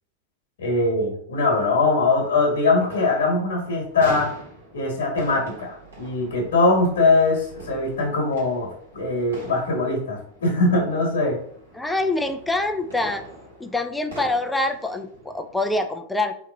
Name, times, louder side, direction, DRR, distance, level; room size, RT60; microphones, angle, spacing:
voice 1, 0.6-4.3 4.7-11.4, left 3 dB, 60° left, -1 dB, 1.2 m, -21 dB
sound 1, 1.4-15.8, right 1 dB, 70° right, 1.4 m, -44 dB
voice 2, 11.7-13.2 13.6-16.3, left 2 dB, 5° left, 6 dB, 0.3 m, -25 dB
3.6 x 2.9 x 2.2 m, 0.62 s
figure-of-eight pair, 90°, 0 cm